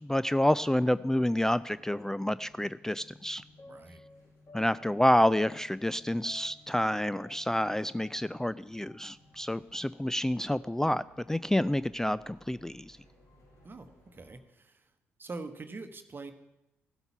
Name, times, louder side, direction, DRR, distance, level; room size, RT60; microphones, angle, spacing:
voice 1, 0.0-3.4 4.5-13.0, left 1 dB, 5° left, 16 dB, 0.3 m, -28 dB
sound 1, 0.6-2.8 3.6-6.8 7.1-9.5 9.7-9.8 10.6-10.7 11.5-11.7 12.3-12.4 13.3-13.6, left 4 dB, 40° left, 1.3 m, -56 dB
sound 2, 0.7-14.4, left 2 dB, 65° left, 6.2 m, -61 dB
voice 2, 3.7-4.0 13.6-14.9 15.2-16.3, right 3 dB, 35° right, 8 dB, 1.1 m, -44 dB
15.0 x 8.0 x 5.7 m, 0.90 s
hypercardioid pair, 40°, 7 cm